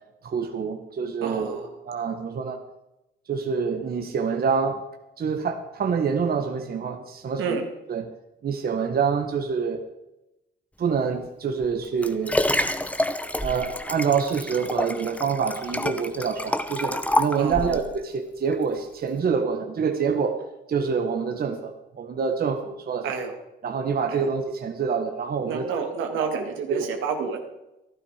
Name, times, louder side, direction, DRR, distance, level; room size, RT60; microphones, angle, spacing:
voice 1, 0.2-2.6 3.3-4.8 5.2-7.6 7.9-8.1 8.4-9.8 10.8-12.4 13.4-20.4 20.7-23.2 23.6-25.7 26.7-26.8, right 6 dB, 50° right, 5 dB, 1.3 m, -26 dB
voice 2, 1.2-1.7 7.4-7.6 17.4-17.8 23.0-23.3 24.1-24.2 25.4-27.4, right 6 dB, 85° right, 4 dB, 2.1 m, -29 dB
Liquid, 11.6-17.9 18.5-18.6, left 1 dB, 5° left, 0.9 m, -27 dB
13.5 x 12.0 x 5.0 m, 0.91 s
cardioid pair, 90°, 20 cm